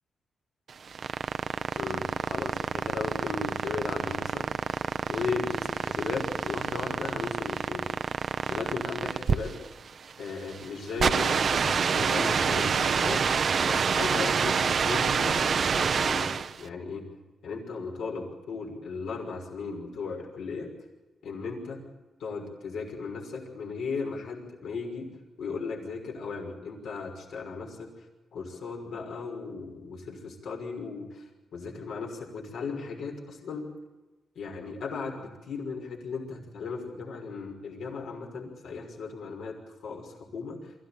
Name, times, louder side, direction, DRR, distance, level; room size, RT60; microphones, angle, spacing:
sound 1, 0.7-16.6, right 6 dB, 50° right, 0.8 m, -27 dB
voice 1, 1.8-4.5 5.1-7.9 8.5-9.5 10.2-13.2 13.6-17.1 17.4-20.7 21.2-21.8 22.2-25.1 25.4-27.9 28.3-33.7 34.4-40.7, left 4 dB, 80° left, 1 dB, 6.0 m, -36 dB
24.0 x 15.5 x 9.0 m, 1.1 s
cardioid pair, 105°, 0 cm